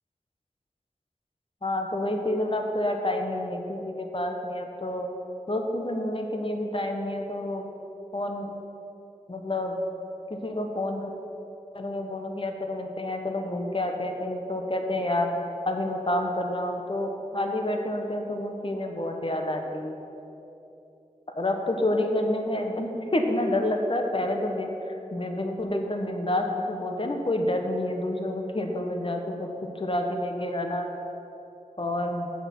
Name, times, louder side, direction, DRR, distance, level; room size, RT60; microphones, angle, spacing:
voice 1, 1.6-5.1 5.5-7.7 8.1-8.5 9.3-9.8 10.3-11.1 11.7-15.3 15.7-20.0 21.4-29.5 29.7-30.9 31.8-32.3, left 1 dB, 40° left, 3 dB, 1.1 m, -29 dB
7.9 x 6.4 x 7.3 m, 2.9 s
wide cardioid pair, 45°, 14 cm